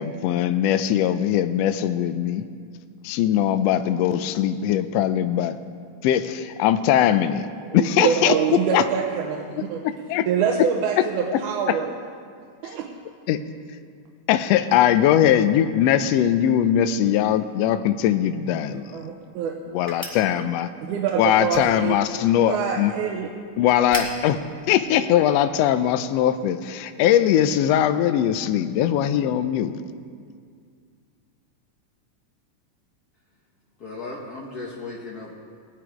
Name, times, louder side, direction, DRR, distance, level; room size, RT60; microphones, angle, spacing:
voice 1, 0.0-2.4 3.0-5.6 6.0-7.4 7.7-8.8 9.8-10.2 11.7-11.8 13.3-13.4 14.3-18.8 19.7-20.7 21.2-22.9 23.6-24.4 24.7-29.7, left 10 dB, 90° left, 10 dB, 1.4 m, -21 dB
voice 2, 7.6-9.8 10.3-11.9 12.6-12.9 18.7-19.6 20.9-23.3, right 7 dB, 85° right, 0 dB, 2.2 m, -25 dB
sound 1, 18.5-25.6, equal, 15° right, 0.8 m, -41 dB
voice 3, 33.8-35.3, left 3 dB, 60° left, -4 dB, 1.0 m, -36 dB
18.5 x 9.4 x 5.0 m, 2.2 s
omnidirectional pair, 3.5 m